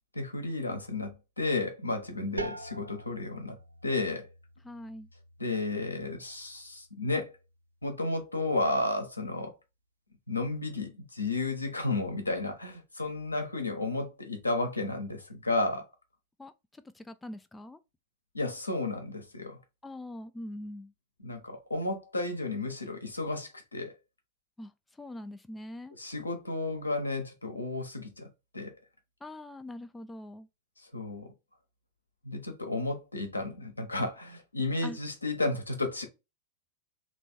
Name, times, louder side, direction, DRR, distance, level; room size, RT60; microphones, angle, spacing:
voice 1, 0.1-3.6 3.8-4.3 5.4-7.3 7.8-9.5 10.3-15.9 18.3-19.6 21.2-23.9 26.0-28.3 28.5-28.8 30.9-31.3 32.2-36.1, left 2 dB, 80° left, 1.0 m, -32 dB
sound 1, 2.4-7.9, right 2 dB, 85° right, 0.6 m, -45 dB
voice 2, 4.6-5.1 16.4-17.8 19.8-20.9 24.6-24.7 25.0-25.9 29.2-30.5 34.8-35.0, left 1 dB, 10° left, 0.3 m, -43 dB
3.4 x 3.0 x 4.2 m
figure-of-eight pair, 90°, 0 cm